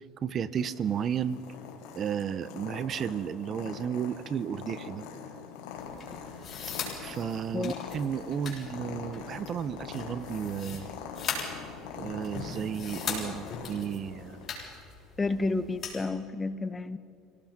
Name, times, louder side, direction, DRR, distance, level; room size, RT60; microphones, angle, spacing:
voice 1, 0.2-1.4 1.9-5.0 7.0-10.9 12.0-14.5, right 8 dB, 40° right, 16 dB, 0.7 m, -33 dB
Purr, 0.6-14.5, left 6 dB, 85° left, 3.5 m, -43 dB
sound 1, 5.8-16.0, left 5 dB, 35° left, 7.1 m, -40 dB
voice 2, 15.2-17.0, left 3 dB, 20° left, 13 dB, 0.8 m, -30 dB
26.5 x 18.0 x 5.9 m, 2.4 s
cardioid pair, 130°, 0 cm